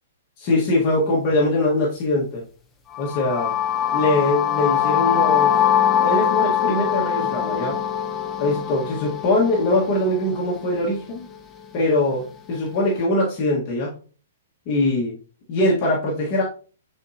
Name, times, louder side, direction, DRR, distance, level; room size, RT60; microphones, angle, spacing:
voice 1, 0.4-2.4 3.0-3.5 3.9-5.6 6.0-7.8 8.4-11.3 11.7-13.9 14.7-15.1 15.5-16.4, left 2 dB, 25° left, -4 dB, 1.6 m, -22 dB
sound 1, 2.9-10.8, left 9 dB, 10° left, 0.8 m, -22 dB
10.5 x 4.5 x 2.8 m, 0.38 s
hypercardioid pair, 170°, 0 cm